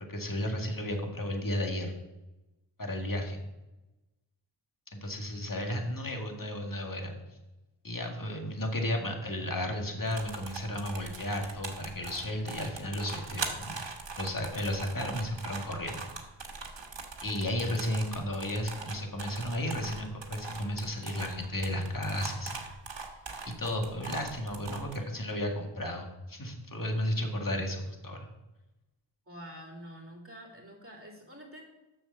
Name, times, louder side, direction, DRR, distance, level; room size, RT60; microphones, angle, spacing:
voice 1, 0.0-1.9 2.8-3.4 4.9-7.2 7.8-13.7 14.2-16.1 17.2-22.6 23.4-28.3, left 1 dB, 45° left, 2 dB, 2.1 m, -33 dB
sound 1, 10.1-25.0, right 4 dB, 65° right, 1.5 m, -41 dB
voice 2, 29.3-31.6, equal, 25° right, -1 dB, 3.1 m, -47 dB
7.3 x 6.9 x 6.6 m, 1.0 s
cardioid pair, 40°, 47 cm